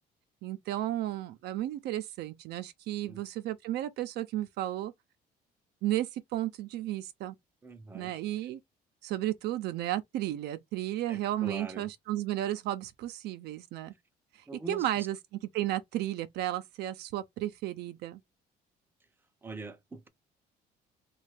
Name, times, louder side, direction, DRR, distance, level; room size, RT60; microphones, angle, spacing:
voice 1, 0.4-4.9 5.8-7.3 7.9-8.6 9.0-13.9 14.3-15.2 15.5-18.2, right 14 dB, 75° right, 0.5 m, -33 dB
voice 2, 7.6-8.1 11.1-11.9 14.5-15.1 19.4-20.1, right 2 dB, 10° right, 0.6 m, -43 dB
3.2 x 2.3 x 3.2 m
cardioid pair, 110°, 17 cm